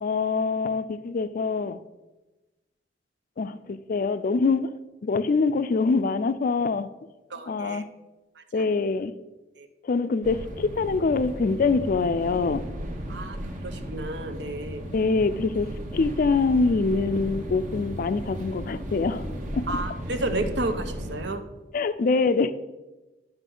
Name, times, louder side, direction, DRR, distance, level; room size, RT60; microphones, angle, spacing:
voice 1, 0.0-1.8 3.4-4.7 5.0-6.9 7.5-7.9 8.5-9.1 9.8-12.6 14.9-19.2 19.5-19.7 21.7-22.5, left 4 dB, 50° left, 13 dB, 0.4 m, -24 dB
voice 2, 7.3-7.8 8.4-8.7 9.6-9.7 13.1-13.4 13.6-14.8 19.7-21.5, right 2 dB, 75° right, 8 dB, 0.8 m, -32 dB
sound 1, 10.2-21.3, equal, 45° right, 1.0 m, -35 dB
11.0 x 5.6 x 3.8 m, 1.1 s
head